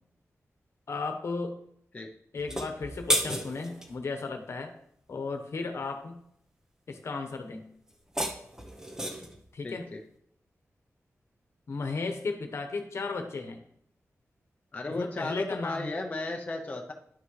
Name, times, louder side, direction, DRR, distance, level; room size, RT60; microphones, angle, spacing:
voice 1, 0.9-1.6 2.3-4.7 5.1-6.2 6.9-7.6 9.5-9.9 11.7-13.6 14.9-15.9, left 4 dB, 60° left, 6 dB, 1.0 m, -35 dB
sound 1, 2.4-3.9 7.9-9.4, equal, 10° right, 0.9 m, -32 dB
voice 2, 9.6-10.0 14.7-16.9, left 2 dB, 25° left, 1 dB, 0.6 m, -34 dB
10.5 x 6.0 x 3.2 m, 0.69 s
wide cardioid pair, 175°, 5 cm